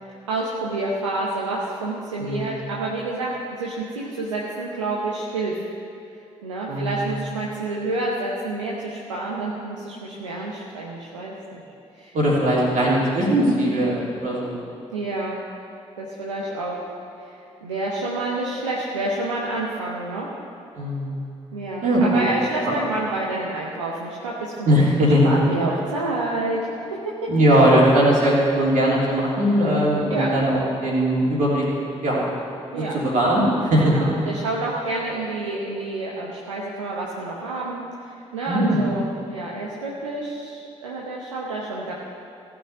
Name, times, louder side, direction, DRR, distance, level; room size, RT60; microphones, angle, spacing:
voice 1, 0.0-5.6 6.4-11.6 12.0-12.5 14.9-15.4 16.0-16.8 17.2-20.3 21.5-24.5 25.2-26.8 27.2-27.3 30.1-30.3 32.7-33.0 33.8-37.8 38.1-41.9, right 2 dB, 85° right, -4 dB, 0.9 m, -28 dB
voice 2, 2.2-2.6 6.7-7.0 12.1-14.6 20.7-21.2 21.8-22.2 24.6-25.3 27.3-31.6 32.0-32.2 32.7-33.9 38.5-38.8, equal, 60° right, -5 dB, 3.4 m, -19 dB
15.5 x 6.1 x 8.2 m, 2.6 s
figure-of-eight pair, 40°, 15 cm